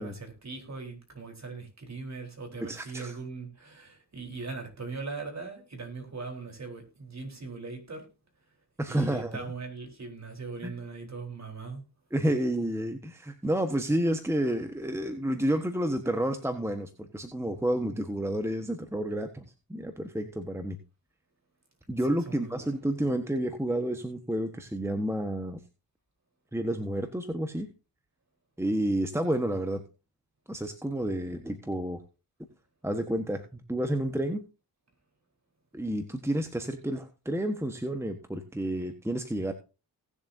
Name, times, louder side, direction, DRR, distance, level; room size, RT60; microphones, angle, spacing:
voice 1, 0.0-8.1 8.9-11.8 22.1-22.7, right 4 dB, 40° right, 4.2 m, -40 dB
voice 2, 2.6-3.1 8.8-9.5 10.6-10.7 12.1-20.8 21.9-25.6 26.5-27.7 28.6-29.8 30.5-32.0 32.8-34.4 35.7-39.5, right 1 dB, 5° right, 1.4 m, -30 dB
18.5 x 7.1 x 2.7 m
cardioid pair, 60°, 42 cm